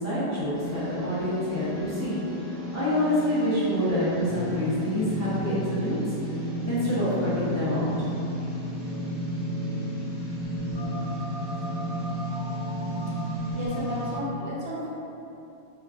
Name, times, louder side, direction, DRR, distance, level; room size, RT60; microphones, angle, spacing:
voice 1, 0.0-2.2 2.7-6.0 6.7-7.9, equal, 20° left, -11 dB, 0.6 m, -27 dB
sound 1, 0.5-14.2, equal, 45° right, 1.1 m, -32 dB
voice 2, 13.5-14.9, left 1 dB, 75° right, -7 dB, 1.1 m, -32 dB
3.5 x 3.2 x 2.4 m, 2.9 s
omnidirectional pair, 1.1 m